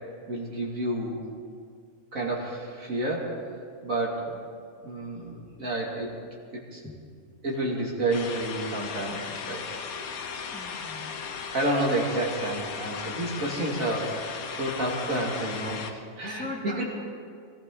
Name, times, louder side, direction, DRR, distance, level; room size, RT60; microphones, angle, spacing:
voice 1, 0.3-1.2 2.1-3.3 3.8-4.3 4.8-6.2 6.5-6.8 7.4-9.7 11.5-16.5 16.8-16.9, right 1 dB, 65° right, -3 dB, 3.0 m, -30 dB
sound 1, 8.1-15.9, left 6 dB, 75° left, 1.4 m, -36 dB
voice 2, 9.8-10.1 10.5-11.2 16.3-16.8, left 2 dB, 5° left, -3 dB, 2.1 m, -40 dB
23.5 x 15.0 x 3.9 m, 2.2 s
omnidirectional pair, 1.6 m